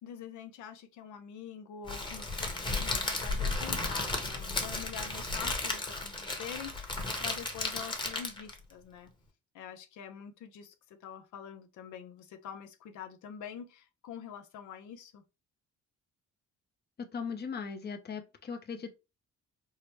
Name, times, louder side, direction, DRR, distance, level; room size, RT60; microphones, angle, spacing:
voice 1, 0.0-9.1 9.5-15.2, left 8 dB, 75° left, 0.6 m, -46 dB
Crackle, 1.9-8.6, left 2 dB, 15° left, 1.0 m, -34 dB
voice 2, 17.0-18.9, left 5 dB, 35° left, 0.6 m, -38 dB
4.5 x 2.1 x 3.1 m
cardioid pair, 90°, 30 cm